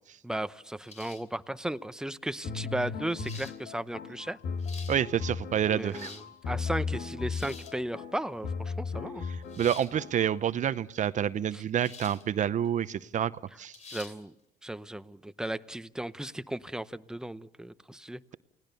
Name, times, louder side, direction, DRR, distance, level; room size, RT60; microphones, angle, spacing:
voice 1, 0.2-4.4 5.7-6.2 6.5-9.2 11.5-11.6 13.9-14.3 14.6-18.2, right 1 dB, 5° right, 13 dB, 0.8 m, -35 dB
sound 1, 0.9-1.4 2.4-2.5 3.2-3.6 4.4-5.0 5.7-6.3 7.3-7.8 9.5-9.9 11.8-12.2 12.6-12.7 13.7-14.2, left 4 dB, 40° left, 3.3 m, -47 dB
sound 2, 2.4-10.4, left 5 dB, 75° left, 2.5 m, -36 dB
voice 2, 4.9-6.1 9.3-13.3 13.6-13.8, right 9 dB, 45° right, 15 dB, 0.8 m, -28 dB
29.5 x 18.5 x 6.9 m, 0.84 s
cardioid pair, 110°, 17 cm